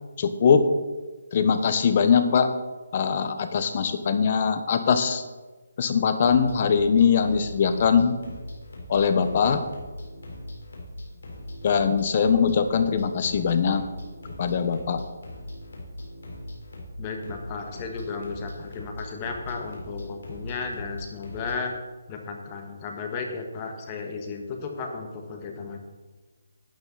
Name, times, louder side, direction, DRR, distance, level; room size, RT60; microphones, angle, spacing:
voice 1, 0.2-0.7 1.3-2.5 2.9-5.2 5.8-8.1 8.9-9.6 11.6-13.8 14.4-15.0, left 6 dB, 40° left, 9 dB, 1.0 m, -21 dB
sound 1, 6.1-21.6, left 1 dB, 75° left, 3.8 m, -40 dB
voice 2, 17.0-21.7 22.1-25.8, left 4 dB, 25° left, 3 dB, 1.4 m, -34 dB
11.5 x 8.8 x 4.1 m, 1.2 s
hypercardioid pair, 160°, 0 cm